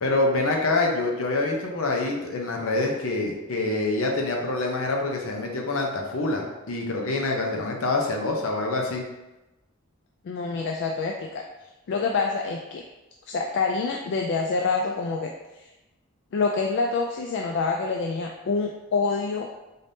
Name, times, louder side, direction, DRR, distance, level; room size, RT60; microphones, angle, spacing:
voice 1, 0.0-9.0, left 2 dB, 70° left, 1 dB, 0.7 m, -26 dB
voice 2, 10.2-11.4 11.9-12.8 13.3-15.7 16.3-19.5, left 4 dB, 55° left, 2 dB, 0.3 m, -26 dB
3.9 x 3.4 x 2.7 m, 1.0 s
head